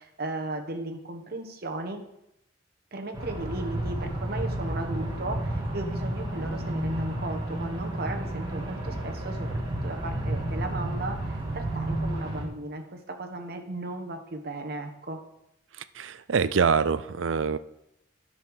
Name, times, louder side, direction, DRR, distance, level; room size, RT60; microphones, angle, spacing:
voice 1, 0.0-2.0 2.9-15.2, right 2 dB, 55° right, 3 dB, 1.4 m, -36 dB
sound 1, 3.1-12.4, right 1 dB, 25° right, 2.2 m, -31 dB
voice 2, 15.8-17.6, right 5 dB, 85° right, 15 dB, 0.5 m, -25 dB
10.5 x 5.7 x 6.5 m, 0.83 s
head